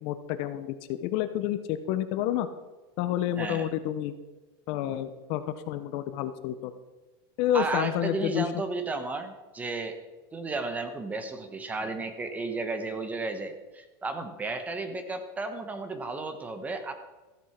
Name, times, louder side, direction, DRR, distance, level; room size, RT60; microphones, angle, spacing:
voice 1, 0.0-2.5 3.0-4.1 4.7-6.7 7.4-8.5, left 11 dB, 45° left, 11 dB, 0.8 m, -29 dB
voice 2, 3.4-3.7 7.5-10.0 10.3-16.9, right 3 dB, 10° right, 8 dB, 1.1 m, -33 dB
14.5 x 8.1 x 5.9 m, 1.2 s
supercardioid pair, 155°, 12 cm